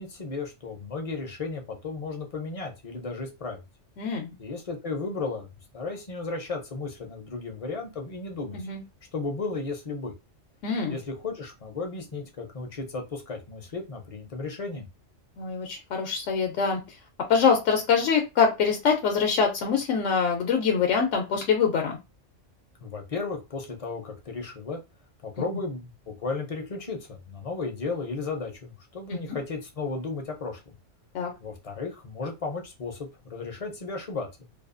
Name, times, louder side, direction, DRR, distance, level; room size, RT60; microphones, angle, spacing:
voice 1, 0.0-3.6 4.4-5.5 5.7-8.7 9.1-10.1 10.9-14.8 22.8-24.8 25.2-30.7 31.4-34.3, left 3 dB, 40° left, 2 dB, 0.5 m, -34 dB
voice 2, 4.0-4.3 8.5-8.8 10.6-11.0 15.4-16.8 17.3-22.0 29.3-29.4 31.1-31.3, left 6 dB, 80° left, 3 dB, 1.0 m, -24 dB
2.6 x 2.3 x 2.4 m, 0.25 s
omnidirectional pair, 1.3 m